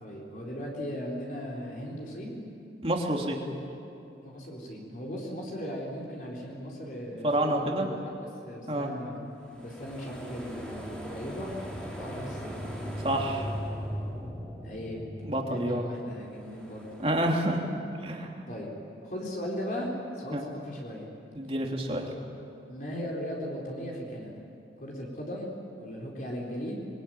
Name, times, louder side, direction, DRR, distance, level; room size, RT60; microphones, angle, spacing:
voice 1, 0.0-2.4 4.2-7.9 8.2-9.2 9.6-11.5 11.9-12.5 14.6-15.0 15.5-16.8 18.5-18.7 19.0-21.1 22.7-24.4 24.8-26.8, equal, 45° left, -3 dB, 4.1 m, -37 dB
voice 2, 2.8-3.4 7.2-7.9 8.7-8.9 13.0-13.5 15.2-15.9 17.0-17.7 18.0-18.3 20.3-20.4 21.3-22.1, right 1 dB, 30° right, 0 dB, 3.0 m, -28 dB
sound 1, 9.5-17.3, equal, 5° left, 3.3 m, -39 dB
26.0 x 22.0 x 9.3 m, 2.7 s
head